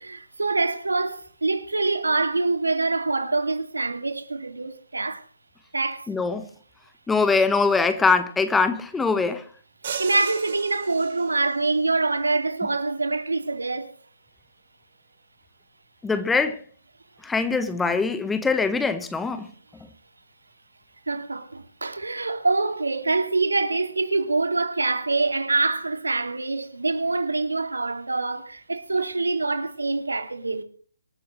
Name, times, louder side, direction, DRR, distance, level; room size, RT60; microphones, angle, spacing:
voice 1, 0.0-5.2 5.7-6.1 10.0-13.9 21.1-30.6, right 3 dB, 75° right, 2.4 m, -25 dB
voice 2, 6.1-6.5 7.1-9.4 16.0-16.6 17.2-19.5, left 4 dB, 5° left, 1.2 m, -22 dB
sound 1, 9.8-11.6, right 7 dB, 45° right, 5.0 m, -36 dB
26.0 x 13.0 x 3.2 m
figure-of-eight pair, 140°, 0 cm